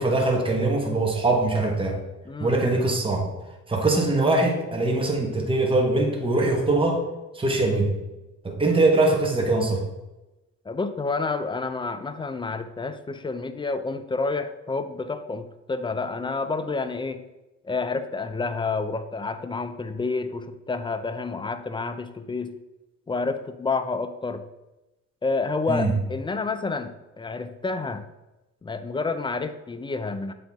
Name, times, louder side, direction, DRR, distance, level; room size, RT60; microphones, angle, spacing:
voice 1, 0.0-2.0 2.4-3.3 3.7-7.0 7.3-7.9 8.4-9.8 25.7-25.9, right 2 dB, 15° right, 1 dB, 1.3 m, -22 dB
voice 2, 2.3-2.6 10.7-17.2 17.6-22.5 23.1-24.4 25.2-28.1 28.6-30.3, left 3 dB, 15° left, 10 dB, 0.4 m, -29 dB
7.8 x 3.8 x 3.6 m, 1.0 s
cardioid pair, 90°, 30 cm